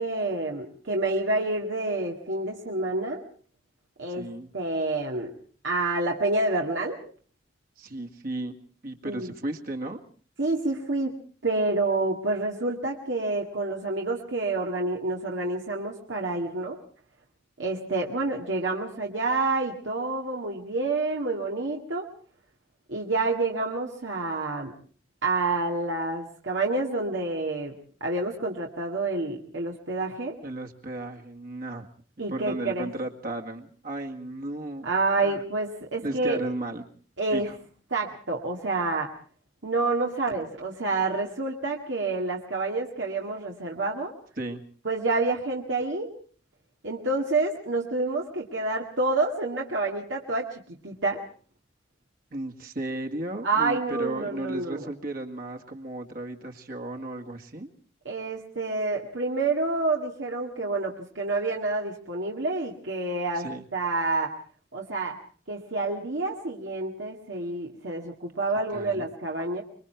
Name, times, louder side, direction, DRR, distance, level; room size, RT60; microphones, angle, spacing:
voice 1, 0.0-3.2 4.0-4.3 4.5-5.3 5.6-7.0 9.0-9.3 10.4-11.2 11.4-16.8 17.6-22.1 22.9-24.7 25.2-27.7 28.0-30.4 32.2-32.9 34.8-36.4 37.2-37.5 37.9-39.1 39.6-44.1 44.9-46.1 46.8-51.2 53.4-54.9 58.1-63.5 63.7-64.3 64.7-65.2 65.5-69.6, right 3 dB, 85° right, 0 dB, 2.2 m, -28 dB
voice 2, 4.2-4.5 7.8-8.6 8.8-10.0 30.4-31.9 32.2-34.9 35.2-35.4 36.0-36.9 37.3-37.5 44.4-44.6 52.3-57.7 63.4-63.6 68.7-69.1, right 1 dB, 55° right, 3 dB, 1.9 m, -34 dB
25.0 x 23.0 x 4.6 m, 0.43 s
head